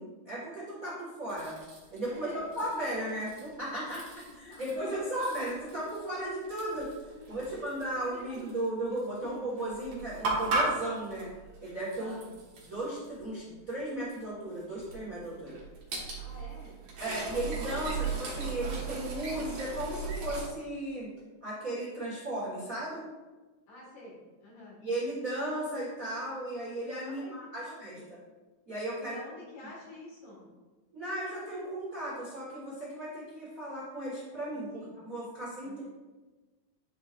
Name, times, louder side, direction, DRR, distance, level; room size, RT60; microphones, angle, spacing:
voice 1, 0.0-1.6 1.9-4.0 4.4-6.9 7.3-11.3 11.6-12.3 12.6-15.6 17.0-21.1 21.4-23.0 24.8-28.2 28.7-29.2 30.9-35.8, right 1 dB, 85° right, -7 dB, 0.7 m, -35 dB
sound 1, 1.3-2.2 2.5-3.5 3.8-4.8 5.1-8.6 8.9-9.2 9.6-13.2 13.7-13.8 14.1-14.2 14.8-20.5, right 3 dB, 60° right, 2.4 m, -37 dB
voice 2, 2.0-3.0 4.4-5.1 6.2-6.3 7.2-8.6 9.2-9.4 12.0-12.2 16.2-16.8 23.7-24.8 27.0-28.1 29.0-30.5 34.7-34.9 35.6-35.8, left 2 dB, 60° left, -5 dB, 3.3 m, -49 dB
10.5 x 4.3 x 2.5 m, 1.2 s
omnidirectional pair, 4.6 m